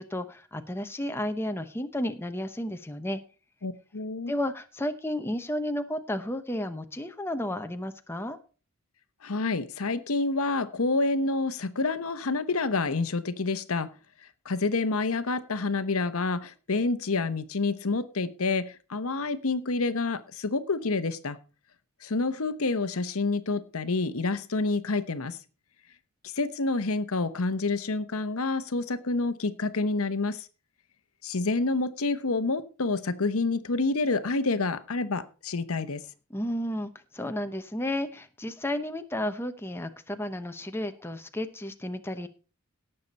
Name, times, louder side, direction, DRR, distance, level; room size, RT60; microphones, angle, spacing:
voice 1, 0.0-3.2 4.3-8.4 36.3-42.3, left 1 dB, 10° left, 7 dB, 0.8 m, -32 dB
voice 2, 3.6-4.3 9.2-13.9 14.4-21.4 22.0-25.4 26.2-30.5 31.2-36.0, left 3 dB, 70° left, 13 dB, 0.9 m, -28 dB
17.5 x 6.8 x 4.1 m, 0.35 s
head